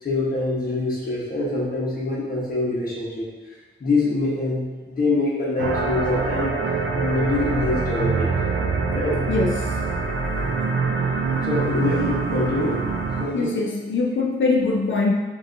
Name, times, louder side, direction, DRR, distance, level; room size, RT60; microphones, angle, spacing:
voice 1, 0.0-3.3 3.8-6.5 6.9-8.3 8.9-9.2 11.4-12.8 13.2-13.6, left 2 dB, 45° left, -6 dB, 1.1 m, -24 dB
sound 1, 5.6-13.3, right 4 dB, 65° right, 0.4 m, -24 dB
voice 2, 9.3-9.8 13.3-15.1, left 3 dB, 65° left, 1 dB, 0.5 m, -22 dB
5.2 x 2.7 x 2.6 m, 1.3 s
wide cardioid pair, 120°, 21 cm